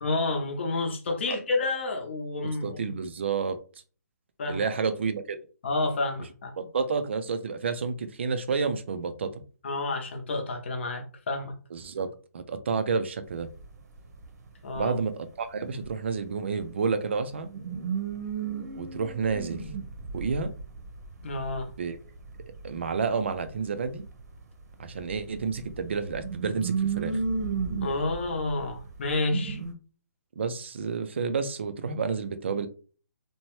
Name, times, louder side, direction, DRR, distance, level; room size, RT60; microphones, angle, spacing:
voice 1, 0.0-2.9 4.4-4.7 5.6-6.6 9.6-11.5 14.6-14.9 21.2-21.7 27.8-29.6, left 2 dB, 40° left, 3 dB, 0.7 m, -30 dB
voice 2, 2.6-3.6 4.5-5.4 6.6-9.4 11.7-13.5 14.7-17.5 18.8-19.7 20.1-20.5 21.8-22.0 22.6-24.0 24.8-27.2 30.4-32.7, right 5 dB, 40° right, 11 dB, 0.4 m, -30 dB
sound 1, 13.3-13.7 14.0-14.8 15.8-15.9 16.3-16.4 16.6-16.7 17.3-24.5 24.8-29.7, right 5 dB, 70° right, 0.9 m, -34 dB
2.7 x 2.1 x 3.0 m, 0.38 s
hypercardioid pair, 175°, 9 cm